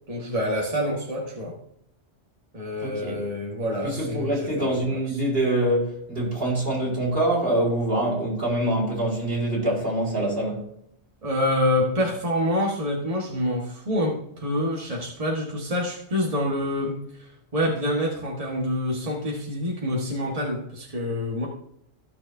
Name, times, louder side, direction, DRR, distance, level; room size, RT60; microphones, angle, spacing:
voice 1, 0.1-1.6 2.5-5.0 11.2-21.5, left 1 dB, 35° right, 1.6 m, -27 dB
voice 2, 2.8-3.2 3.8-10.6, right 1 dB, 60° right, 4.7 m, -25 dB
15.5 x 6.7 x 2.7 m
omnidirectional pair, 1.1 m